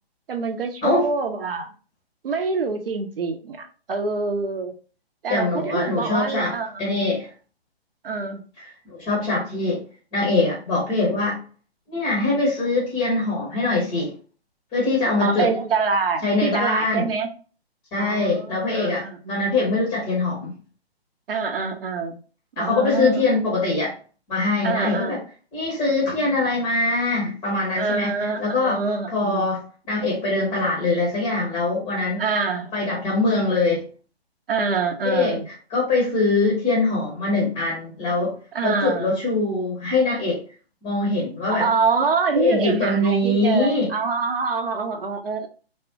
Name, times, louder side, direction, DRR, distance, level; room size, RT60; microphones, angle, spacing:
voice 1, 0.3-1.7 2.2-4.7 5.2-6.9 8.0-8.4 15.2-17.3 17.9-19.4 21.3-22.2 22.6-23.2 24.6-25.2 27.8-29.5 32.2-32.7 34.5-35.5 38.5-39.1 41.5-45.5, right 4 dB, 60° right, 0.6 m, -25 dB
voice 2, 5.3-7.3 8.6-9.8 10.1-11.4 11.9-14.1 14.7-15.5 16.2-17.1 17.9-20.6 22.6-23.9 24.3-25.2 25.5-28.8 29.1-29.6 29.9-32.2 32.7-33.8 35.0-38.3 38.6-40.4 40.8-41.7 42.3-43.9, left 2 dB, 15° left, 0.7 m, -23 dB
3.5 x 2.2 x 2.7 m
figure-of-eight pair, 130°, 32 cm